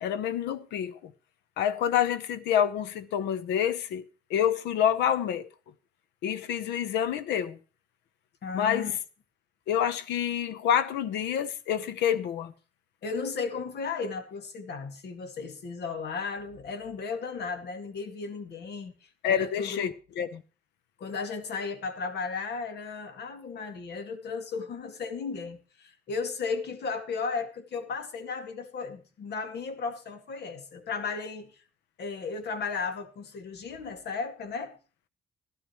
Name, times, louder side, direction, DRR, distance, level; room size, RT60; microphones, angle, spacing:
voice 1, 0.0-1.1 1.6-4.0 4.3-5.5 6.2-7.6 8.5-8.9 9.7-12.5 19.2-20.4, left 9 dB, 90° left, 0.9 m, -27 dB
voice 2, 8.4-9.0 13.0-19.9 21.0-31.5 32.0-34.7, left 5 dB, 75° left, 2.1 m, -35 dB
15.0 x 12.5 x 3.1 m
supercardioid pair, 60°, 17 cm